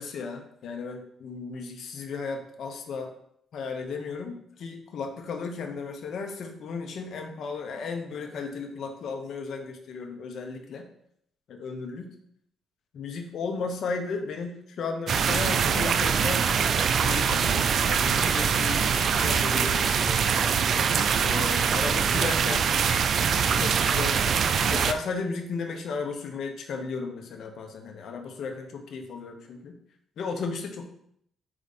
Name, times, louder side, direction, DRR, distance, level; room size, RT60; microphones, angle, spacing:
voice 1, 0.0-3.1 3.5-10.9 11.5-12.1 12.9-16.5 17.0-20.5 21.2-22.7 23.5-24.2 24.7-29.8 30.2-30.8, left 4 dB, 65° left, 4 dB, 1.1 m, -35 dB
sound 1, 15.1-24.9, right 6 dB, 60° right, 0.4 m, -23 dB
5.0 x 5.0 x 4.2 m, 0.70 s
cardioid pair, 90°, 0 cm